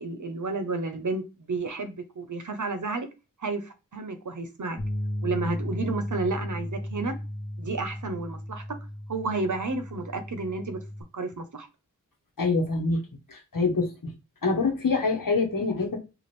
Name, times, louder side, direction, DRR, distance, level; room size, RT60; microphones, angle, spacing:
voice 1, 0.0-3.1 3.4-4.8 5.2-7.2 7.6-8.8 9.1-10.8 11.1-11.7, right 3 dB, 65° right, 0.7 m, -31 dB
sound 1, 4.8-11.0, left 1 dB, 30° left, 0.9 m, -35 dB
voice 2, 12.4-13.0 13.3-14.1 14.4-16.0, left 3 dB, 90° left, 1.0 m, -25 dB
4.2 x 2.4 x 3.2 m
wide cardioid pair, 50°, 32 cm